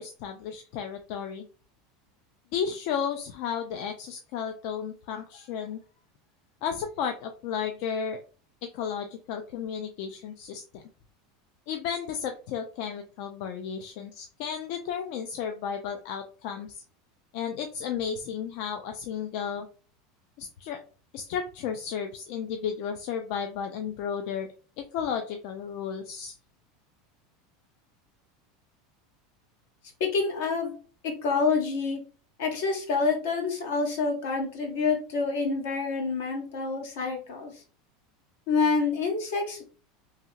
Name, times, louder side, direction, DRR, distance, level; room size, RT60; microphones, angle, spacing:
voice 1, 0.0-1.4 2.5-5.8 6.6-8.2 8.6-10.8 11.7-16.8 17.3-19.7 20.4-20.8 21.1-24.5 24.8-26.4, left 7 dB, 55° left, 5 dB, 0.3 m, -33 dB
voice 2, 30.0-30.7 31.0-32.0 32.4-37.6 38.5-39.6, left 4 dB, 75° left, 2 dB, 1.0 m, -27 dB
2.8 x 2.8 x 2.3 m, 0.39 s
supercardioid pair, 160°, 0 cm